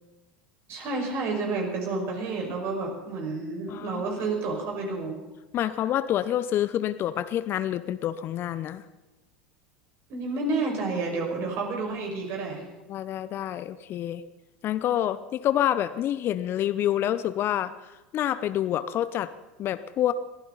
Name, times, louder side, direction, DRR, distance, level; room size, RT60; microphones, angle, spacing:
voice 1, 0.7-5.2 10.1-12.6, right 3 dB, 50° right, 1 dB, 5.6 m, -30 dB
voice 2, 3.7-4.0 5.5-8.8 12.9-14.2 14.6-17.7 18.1-19.3 19.6-20.1, left 11 dB, 45° left, 14 dB, 0.8 m, -27 dB
22.0 x 15.0 x 4.0 m, 1.1 s
hypercardioid pair, 85°, 6 cm